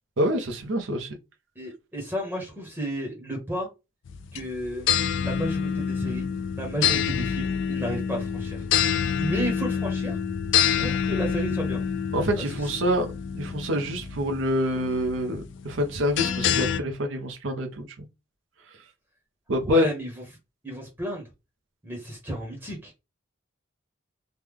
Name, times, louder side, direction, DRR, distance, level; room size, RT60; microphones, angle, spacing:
voice 1, 0.2-1.1 12.1-13.1 13.4-17.8 19.5-19.9, equal, 70° right, 0.6 m, -26 dB
voice 2, 1.6-3.7 4.3-4.9 5.2-6.3 6.6-8.6 9.2-10.2 10.8-11.8 12.4-12.7 19.7-20.1 20.6-21.3 21.8-23.0, right 1 dB, 10° right, 0.9 m, -32 dB
sound 1, 4.1-16.8, left 8 dB, 60° left, 0.3 m, -27 dB
3.1 x 2.1 x 3.4 m
head